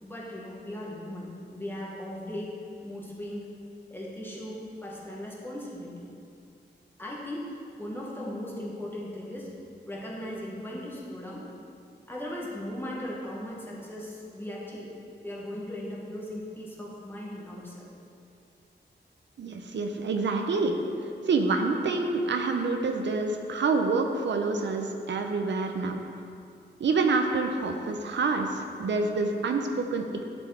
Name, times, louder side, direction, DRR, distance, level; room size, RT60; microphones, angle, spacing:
voice 1, 0.0-2.5 2.8-3.4 3.9-6.1 7.0-9.5 9.9-11.5 12.1-14.9 15.2-17.9, left 1 dB, 10° left, -5 dB, 1.1 m, -38 dB
voice 2, 19.4-20.8 21.3-26.0 26.8-30.0, right 3 dB, 80° right, 4 dB, 0.5 m, -27 dB
10.5 x 4.5 x 3.3 m, 2.5 s
wide cardioid pair, 140°, 19 cm